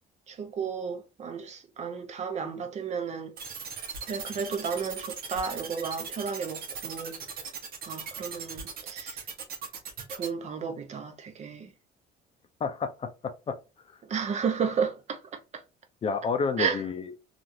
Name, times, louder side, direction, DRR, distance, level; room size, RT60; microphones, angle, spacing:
voice 1, 0.3-3.3 4.0-7.2 7.9-9.2 10.1-11.7 14.1-15.2 15.5-15.6 16.6-16.8, right 6 dB, 40° right, 0.7 m, -33 dB
sound 1, 3.4-10.3, right 6 dB, 60° right, 1.0 m, -38 dB
voice 2, 12.6-13.6 16.0-17.1, left 5 dB, 35° left, 0.5 m, -30 dB
3.0 x 2.5 x 2.6 m
cardioid pair, 110°, 17 cm